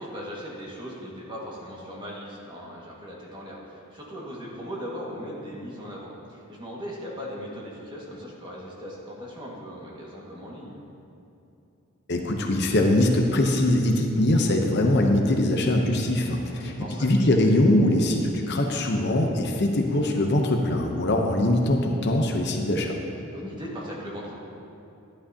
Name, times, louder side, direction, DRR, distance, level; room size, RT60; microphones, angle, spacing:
voice 1, 0.0-10.8 16.5-17.1 23.3-24.3, equal, 20° right, -4 dB, 1.7 m, -38 dB
voice 2, 12.1-16.7 17.0-22.9, left 1 dB, 50° left, 2 dB, 0.8 m, -22 dB
12.0 x 11.5 x 2.8 m, 2.8 s
head